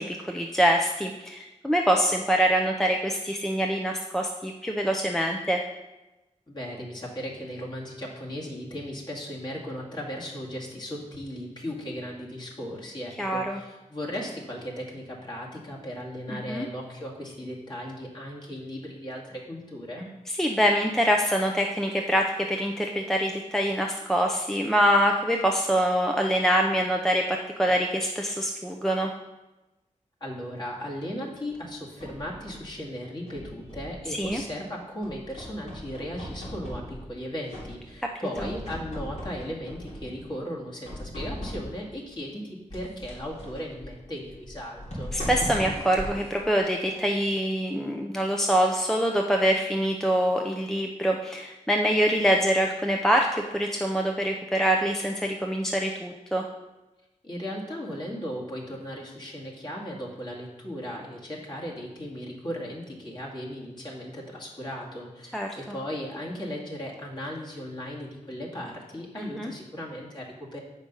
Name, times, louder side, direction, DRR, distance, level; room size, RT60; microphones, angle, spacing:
voice 1, 0.0-5.6 13.2-13.6 16.3-16.7 20.4-29.1 34.1-34.4 38.4-38.5 45.1-56.4 65.3-65.8 69.1-69.5, equal, 5° left, 2 dB, 0.6 m, -25 dB
voice 2, 6.5-20.1 30.2-45.1 57.2-70.6, equal, 35° left, -4 dB, 2.1 m, -37 dB
sound 1, 31.5-32.7 33.3-34.6 35.0-37.2 37.5-38.1 38.3-40.3 40.8-41.9 42.7-47.2, equal, 60° left, 3.1 m, -39 dB
7.7 x 5.1 x 5.4 m, 1.0 s
wide cardioid pair, 95°, 13 cm